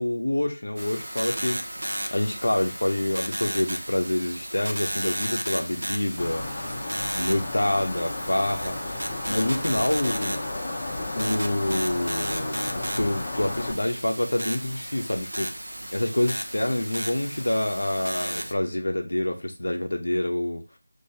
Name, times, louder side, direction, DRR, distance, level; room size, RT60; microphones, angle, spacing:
voice 1, 0.0-1.6 2.1-6.7 7.1-8.8 9.3-10.4 11.1-15.5 15.9-20.6, left 1 dB, 70° left, 3 dB, 0.9 m, -27 dB
sound 1, 0.8-18.5, right 1 dB, 80° right, 0.8 m, -34 dB
sound 2, 6.2-13.7, left 2 dB, 25° left, 0.9 m, -33 dB
5.7 x 3.0 x 2.8 m, 0.30 s
figure-of-eight pair, 165°, 0 cm